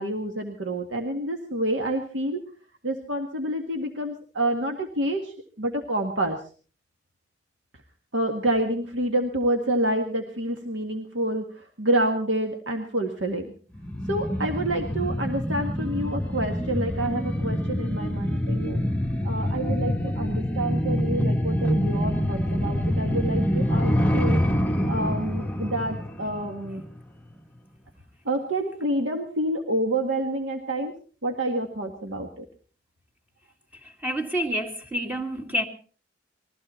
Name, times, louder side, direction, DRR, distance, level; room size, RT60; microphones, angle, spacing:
voice 1, 0.0-2.4 2.8-6.4 8.1-13.5 14.1-18.8 19.2-24.4 24.9-26.8 28.3-30.9 31.2-32.4, right 1 dB, 85° right, 1.9 m, -28 dB
sound 1, 13.7-27.0 27.3-27.4, equal, 5° left, 1.1 m, -26 dB
voice 2, 33.8-35.6, equal, 10° right, 2.2 m, -28 dB
21.5 x 15.0 x 4.4 m
head